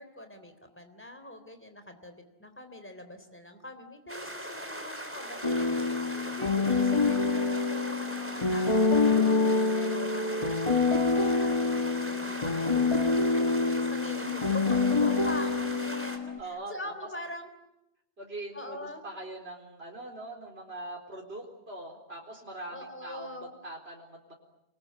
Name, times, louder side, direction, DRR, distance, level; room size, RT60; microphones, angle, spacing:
voice 1, 0.0-16.1 16.4-17.5 18.5-19.0 22.7-23.5, left 1 dB, 10° left, 7 dB, 3.4 m, -43 dB
sound 1, 4.1-16.2, right 1 dB, 10° right, 3.6 m, -39 dB
sound 2, 5.4-16.4, left 3 dB, 30° left, 1.2 m, -26 dB
voice 2, 16.0-16.9 18.2-24.3, right 2 dB, 75° right, 1 dB, 4.5 m, -43 dB
29.0 x 21.5 x 9.6 m, 0.87 s
omnidirectional pair, 1.1 m